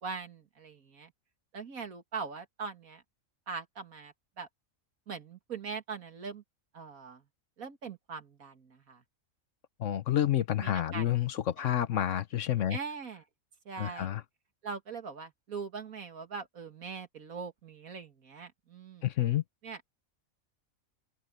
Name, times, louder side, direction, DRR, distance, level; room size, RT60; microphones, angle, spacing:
voice 1, 0.0-1.1 1.5-3.0 3.5-4.5 5.1-6.4 6.7-7.2 7.6-9.0 10.6-11.7 12.7-13.2 13.7-14.2 14.6-19.0 19.6-19.8, right 5 dB, 80° right, 2.5 m, -41 dB
voice 2, 9.8-12.8 13.8-14.2 19.0-19.4, left 11 dB, 65° left, 1.1 m, -29 dB
open air
omnidirectional pair, 1.5 m